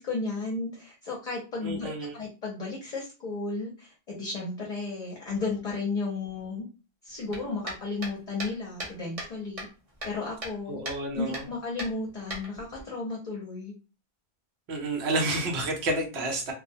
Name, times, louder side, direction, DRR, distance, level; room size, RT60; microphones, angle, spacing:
voice 1, 0.0-6.7 7.0-9.7 10.0-10.8 11.1-13.7, left 3 dB, 45° left, -2 dB, 0.6 m, -34 dB
voice 2, 1.6-2.1 10.7-11.4 14.7-16.5, right 2 dB, 80° right, 1 dB, 1.0 m, -30 dB
sound 1, 7.3-9.3 9.6-10.6 10.9-11.0 11.3-11.5 11.8-12.8, right 1 dB, 35° right, 0.8 m, -38 dB
2.4 x 2.1 x 2.6 m, 0.32 s
omnidirectional pair, 1.1 m